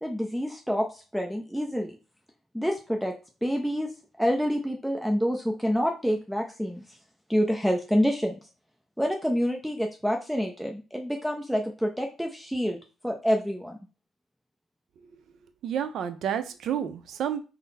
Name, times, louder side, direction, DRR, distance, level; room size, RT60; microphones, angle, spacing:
voice 1, 0.0-2.0 2.5-3.9 4.2-6.8 7.3-8.3 9.0-13.8, equal, ahead, 2 dB, 0.5 m, -27 dB
voice 2, 15.6-17.4, right 9 dB, 75° right, 9 dB, 0.5 m, -30 dB
3.9 x 2.0 x 4.0 m, 0.33 s
cardioid pair, 90°, 0 cm